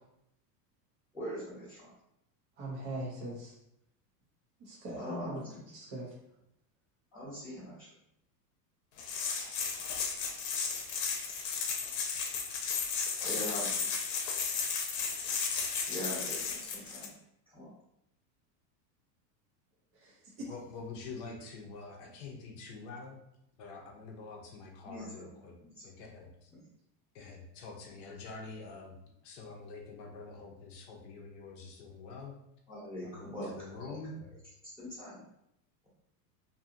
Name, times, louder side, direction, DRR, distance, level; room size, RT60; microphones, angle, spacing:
voice 1, 1.1-1.9 5.0-5.4 7.1-7.9 13.2-13.9 15.2-17.1 17.5-17.7 24.8-25.9 26.5-26.6 32.7-33.5 33.8-34.0 34.8-35.2, equal, 5° left, -10 dB, 0.8 m, -42 dB
voice 2, 2.6-3.5 4.6-5.4 5.7-6.1 20.0-20.1 20.4-20.5, right 1 dB, 25° right, -6 dB, 0.4 m, -40 dB
sound 1, 9.0-17.1, left 5 dB, 80° left, 0.8 m, -34 dB
voice 3, 20.5-23.2 23.6-25.5 25.8-26.5 27.1-29.0 29.2-32.4 33.0-34.1, left 4 dB, 45° left, 1 dB, 0.6 m, -46 dB
2.6 x 2.6 x 2.5 m, 0.79 s
supercardioid pair, 150°, 49 cm